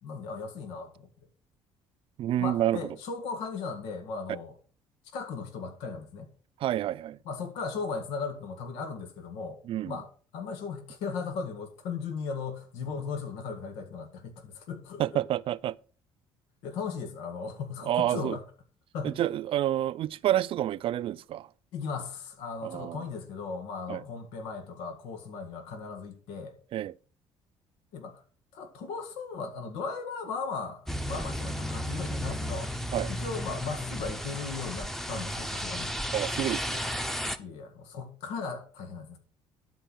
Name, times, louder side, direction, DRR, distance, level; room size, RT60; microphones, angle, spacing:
voice 1, 0.0-1.1 2.4-4.6 5.1-6.3 7.2-9.6 9.8-15.2 16.6-18.4 18.9-19.2 21.7-26.6 27.9-28.2 28.5-32.7 33.1-36.0 37.4-39.2, left 5 dB, 90° left, 2.0 m, -37 dB
voice 2, 2.2-2.8 6.6-7.2 9.7-10.0 15.0-15.8 17.8-18.4 19.0-21.5 22.6-23.0 23.9-24.0 26.7-26.9 32.9-33.1 36.1-36.8, right 12 dB, 60° right, 0.4 m, -28 dB
sound 1, 30.9-37.4, equal, 5° left, 0.8 m, -33 dB
12.5 x 4.7 x 6.2 m
cardioid pair, 100°, 11 cm